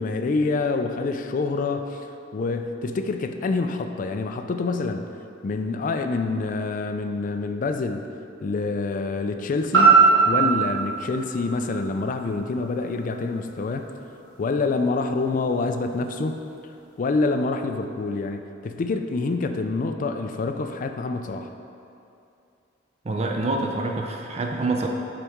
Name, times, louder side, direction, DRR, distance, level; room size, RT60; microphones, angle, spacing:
voice 1, 0.0-5.1 5.4-8.1 8.4-13.9 14.4-16.7 17.0-21.5, left 3 dB, 45° left, 7 dB, 0.3 m, -27 dB
sound 1, 9.7-13.8 14.3-14.4, right 4 dB, 70° right, 1.5 m, -21 dB
voice 2, 23.1-24.9, right 2 dB, 35° right, 1 dB, 0.4 m, -26 dB
6.9 x 4.8 x 3.5 m, 2.7 s
head